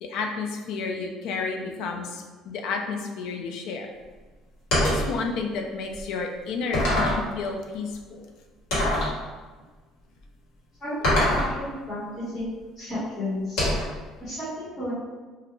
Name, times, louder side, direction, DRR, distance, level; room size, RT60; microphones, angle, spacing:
voice 1, 0.0-3.9 4.8-8.3, left 4 dB, 60° left, 3 dB, 0.3 m, -31 dB
sound 1, 4.7-5.1 5.9-6.0 6.7-7.3 8.7-9.2 11.0-11.5 13.6-14.0, left 1 dB, 75° left, 1.1 m, -23 dB
voice 2, 10.8-12.5 12.8-13.6 14.2-14.9, left 1 dB, 15° left, -13 dB, 0.8 m, -32 dB
2.3 x 2.0 x 2.9 m, 1.3 s
cardioid pair, 180°, 0 cm